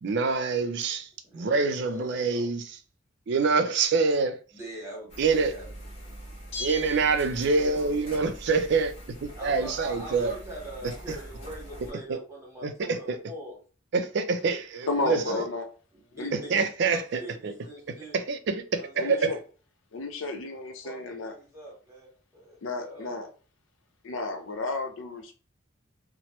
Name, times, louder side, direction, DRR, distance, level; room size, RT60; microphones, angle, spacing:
voice 1, 0.0-2.6 3.3-4.4 5.2-5.5 6.6-8.9 9.2-10.3 12.1-12.2 12.6-13.2 13.9-15.5 16.5-17.5 18.1-19.3, right 4 dB, 55° right, 0.4 m, -26 dB
voice 2, 1.2-2.5 4.5-5.7 7.4-8.2 9.3-13.6 15.0-15.5 15.9-18.2 18.7-19.3 20.8-23.2, right 1 dB, 15° right, 1.2 m, -42 dB
sound 1, 5.1-11.9, right 1 dB, 30° left, 1.1 m, -44 dB
Bell, 6.5-7.9 8.2-8.3, left 3 dB, 55° left, 1.1 m, -40 dB
voice 3, 14.9-15.6 16.1-16.4 19.0-19.4 19.9-21.4 22.6-23.3 24.0-25.3, left 3 dB, 75° left, 0.6 m, -32 dB
3.0 x 2.0 x 2.9 m
head